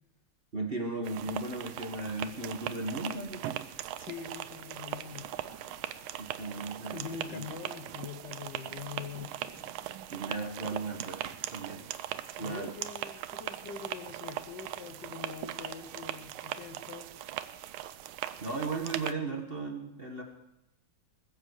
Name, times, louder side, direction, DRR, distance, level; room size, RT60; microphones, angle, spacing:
voice 1, 0.5-3.6 6.2-7.1 10.1-11.2 11.5-11.8 12.4-12.7 18.4-20.2, right 3 dB, 30° right, 2 dB, 1.3 m, -36 dB
sound 1, 1.0-19.1, right 12 dB, 85° right, 1.5 m, -40 dB
voice 2, 4.0-5.3 6.9-9.3 12.4-17.1, left 6 dB, 60° left, 7 dB, 1.6 m, -43 dB
sound 2, 5.2-6.1 6.8-7.9 8.8-10.0, equal, 10° right, 2.7 m, -56 dB
20.5 x 7.6 x 6.4 m, 0.88 s
omnidirectional pair, 2.3 m